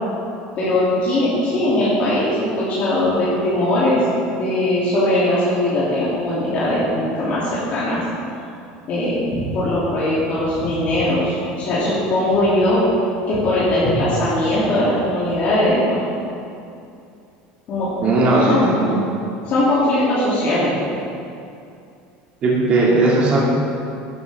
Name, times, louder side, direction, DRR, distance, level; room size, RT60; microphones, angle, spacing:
voice 1, 0.6-8.0 8.9-12.8 13.3-16.0 17.7-17.9 18.5-18.6 19.4-20.7, left 1 dB, 40° left, -10 dB, 2.8 m, -20 dB
voice 2, 18.0-19.0 22.4-23.4, right 2 dB, 35° right, -5 dB, 2.4 m, -17 dB
12.0 x 11.5 x 3.6 m, 2.6 s
supercardioid pair, 145°, 4 cm